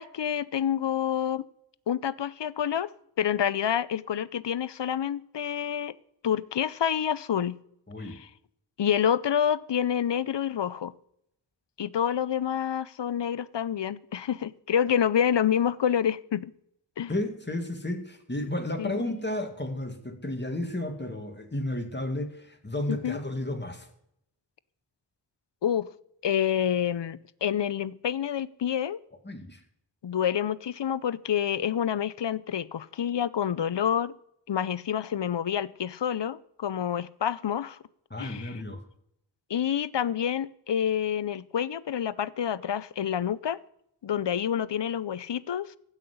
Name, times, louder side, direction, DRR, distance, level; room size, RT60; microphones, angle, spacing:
voice 1, 0.0-1.5 1.9-2.9 3.2-5.9 6.2-7.5 8.0-8.3 8.8-10.9 11.8-16.5 17.0-17.1 18.8-19.0 22.9-23.2 25.6-25.9 26.2-29.0 30.0-34.1 34.5-37.8 38.2-38.6 39.5-43.6 44.0-45.7, left 9 dB, 75° left, 0.7 m, -28 dB
voice 2, 7.9-8.2 17.1-23.9 29.2-29.6 38.1-38.8, left 1 dB, 25° left, 2.3 m, -32 dB
15.5 x 5.8 x 9.9 m
wide cardioid pair, 60°, 43 cm